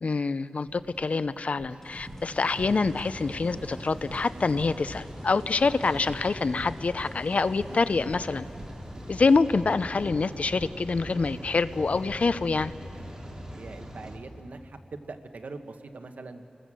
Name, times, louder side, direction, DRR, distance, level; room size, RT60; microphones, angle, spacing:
voice 1, 0.0-8.4 9.1-12.7, left 4 dB, 60° left, 14 dB, 0.6 m, -26 dB
sound 1, 0.7-13.1, right 1 dB, 45° right, 2.0 m, -47 dB
sound 2, 1.8-12.7 15.0-15.1, left 1 dB, 20° left, 2.5 m, -52 dB
Rain, 2.5-14.2, equal, 25° right, 3.1 m, -42 dB
voice 2, 13.5-16.4, right 3 dB, 75° right, 7 dB, 1.2 m, -42 dB
29.5 x 20.0 x 7.6 m, 2.9 s
wide cardioid pair, 100°, 3 cm